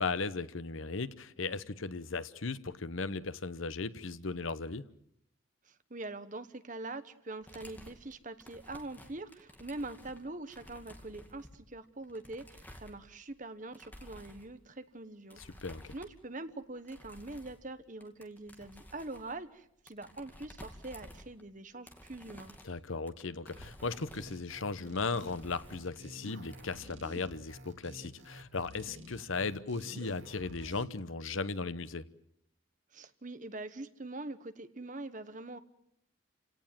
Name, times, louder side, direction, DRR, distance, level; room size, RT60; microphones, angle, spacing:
voice 1, 0.0-4.9 15.4-15.8 22.6-32.0, left 4 dB, 80° left, 14 dB, 1.0 m, -37 dB
voice 2, 5.7-15.4 15.9-22.5 32.9-35.6, right 2 dB, 40° right, 11 dB, 1.2 m, -44 dB
sound 1, 7.4-13.4 13.7-14.5 15.3-16.3 16.6-17.7 18.0-21.6 21.8-26.2 26.5-26.9, left 1 dB, 10° left, 2.4 m, -54 dB
sound 2, 23.5-30.8, equal, 65° right, 2.8 m, -50 dB
30.0 x 17.5 x 7.5 m, 0.74 s
head